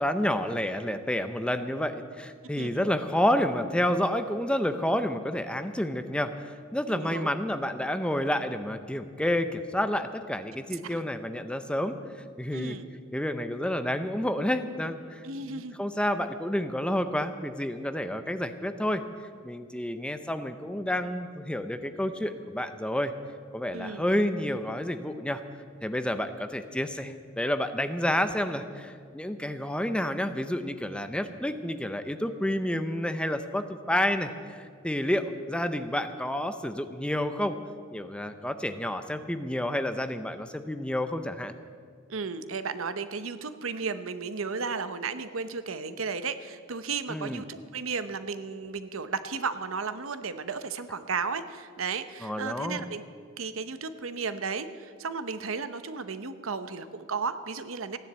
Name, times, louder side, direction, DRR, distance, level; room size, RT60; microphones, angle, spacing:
voice 1, 0.0-12.0 12.4-12.8 13.1-19.0 19.4-23.1 23.5-25.4 25.8-37.6 37.9-41.5 47.1-47.4 52.2-52.8, left 1 dB, 5° left, 9 dB, 0.6 m, -29 dB
voice 2, 6.9-7.3 10.8-11.0 12.5-12.9 15.2-15.8 23.7-24.1 42.1-53.0 53.4-58.0, right 5 dB, 70° right, 12 dB, 0.8 m, -34 dB
15.5 x 10.5 x 8.0 m, 2.1 s
head